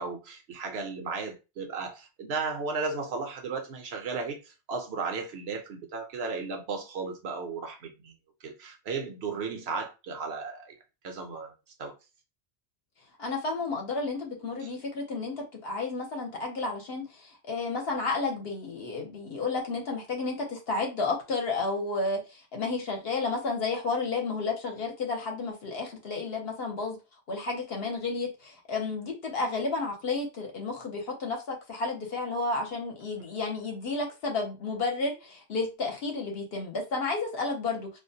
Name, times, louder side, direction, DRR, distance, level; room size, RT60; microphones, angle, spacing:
voice 1, 0.0-8.1 8.4-10.7 11.0-11.5 11.8-11.9 14.6-14.7 33.2-33.3, right 4 dB, 70° right, 0.9 m, -35 dB
voice 2, 13.2-27.0 27.3-37.9, left 3 dB, 65° left, 0.9 m, -32 dB
2.4 x 2.1 x 2.6 m
omnidirectional pair, 1.1 m